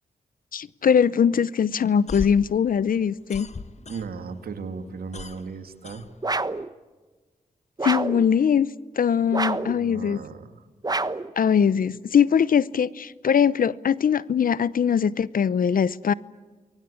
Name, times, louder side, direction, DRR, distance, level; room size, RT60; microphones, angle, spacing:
voice 1, 0.5-3.5 7.8-8.7 9.0-10.2 11.4-16.1, left 7 dB, 65° left, 0.8 m, -21 dB
sound 1, 1.9-4.4 4.7-6.6, left 4 dB, 45° left, 1.6 m, -38 dB
voice 2, 3.9-6.0 9.2-10.7, right 5 dB, 80° right, 2.3 m, -37 dB
sound 2, 6.2-6.7 7.8-8.3 9.3-9.8 10.8-11.3, right 2 dB, 25° right, 1.1 m, -27 dB
28.5 x 23.0 x 8.6 m
supercardioid pair, 45°, 15 cm